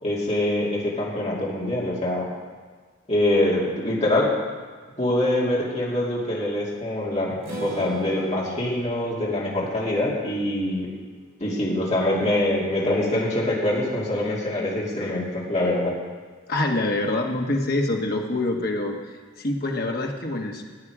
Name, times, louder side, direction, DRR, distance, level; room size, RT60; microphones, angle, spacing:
voice 1, 0.0-2.3 3.1-4.3 5.0-10.9 11.4-15.9, left 1 dB, 35° left, -5 dB, 2.6 m, -24 dB
Strum, 7.4-11.4, right 1 dB, 50° right, 3.8 m, -39 dB
voice 2, 16.5-19.0 19.4-20.6, left 2 dB, 50° left, 1 dB, 1.4 m, -25 dB
15.0 x 8.7 x 4.9 m, 1.5 s
head